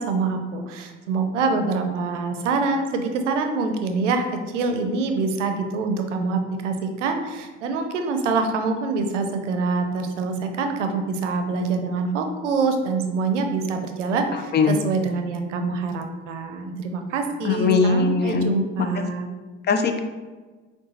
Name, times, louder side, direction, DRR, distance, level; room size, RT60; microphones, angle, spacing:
voice 1, 0.0-19.3, right 4 dB, 85° right, 6 dB, 0.6 m, -25 dB
voice 2, 14.5-14.9 17.4-19.1 19.7-20.0, left 4 dB, 30° left, 7 dB, 0.4 m, -21 dB
6.1 x 2.4 x 2.7 m, 1.3 s
hypercardioid pair, 75°, 35 cm